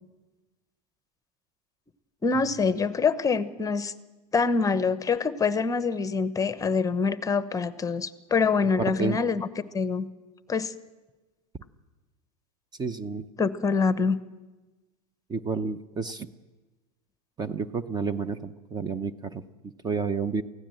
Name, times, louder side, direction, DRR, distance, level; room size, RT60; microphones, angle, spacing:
voice 1, 2.2-3.9 4.3-9.5 9.7-10.1 10.5-10.7 13.4-14.2, left 5 dB, 15° left, 13 dB, 0.9 m, -25 dB
voice 2, 8.6-9.2 12.8-13.2 15.3-16.3 17.4-20.4, right 5 dB, 20° right, 13 dB, 0.8 m, -30 dB
23.5 x 16.0 x 7.8 m, 1.2 s
hypercardioid pair, 110°, 21 cm